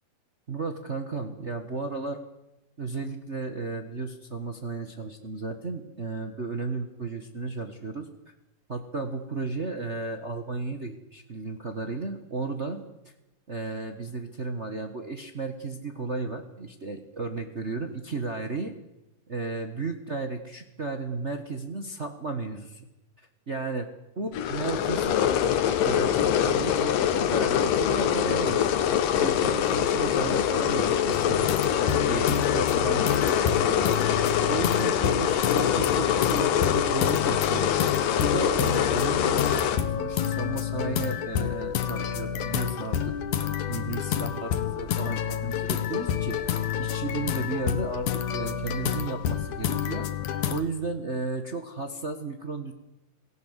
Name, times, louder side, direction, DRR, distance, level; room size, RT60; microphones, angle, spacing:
voice 1, 0.5-2.2 2.8-8.1 8.7-13.1 13.5-18.7 19.3-22.9 23.2-23.9 24.1-25.2 25.7-31.5 31.7-37.8 38.2-43.1 43.7-50.1 50.5-52.7, right 3 dB, 45° right, 6 dB, 0.8 m, -34 dB
sound 1, 24.3-39.8, left 9 dB, 90° left, 3.0 m, -24 dB
sound 2, 31.1-50.6, left 9 dB, 65° left, 2.7 m, -29 dB
28.0 x 18.0 x 8.2 m, 0.95 s
omnidirectional pair, 3.8 m